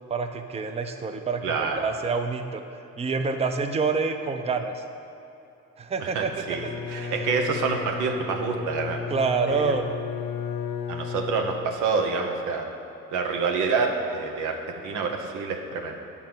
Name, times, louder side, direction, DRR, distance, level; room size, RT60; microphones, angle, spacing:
voice 1, 0.1-2.6 3.0-4.8 5.8-6.3 7.0-7.3 9.1-9.9, right 4 dB, 20° right, 6 dB, 0.5 m, -27 dB
voice 2, 1.4-1.8 6.0-9.0 9.5-9.7 10.9-12.6 13.1-16.0, right 4 dB, 90° right, 3 dB, 0.9 m, -27 dB
Bowed string instrument, 6.4-11.9, left 6 dB, 80° left, 0.8 m, -34 dB
7.2 x 5.5 x 6.0 m, 2.8 s
cardioid pair, 90°, 30 cm